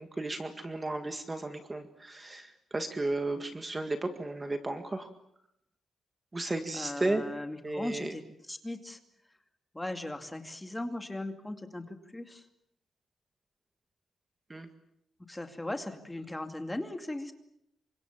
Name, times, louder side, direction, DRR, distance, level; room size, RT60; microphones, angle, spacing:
voice 1, 0.0-5.1 6.3-7.2 7.6-8.1 14.5-14.7, right 2 dB, 15° right, 7 dB, 1.9 m, -34 dB
voice 2, 6.7-9.0 9.7-12.5 15.3-17.3, left 1 dB, 10° left, 6 dB, 2.4 m, -38 dB
29.0 x 25.0 x 7.4 m, 0.77 s
wide cardioid pair, 165°, 0 cm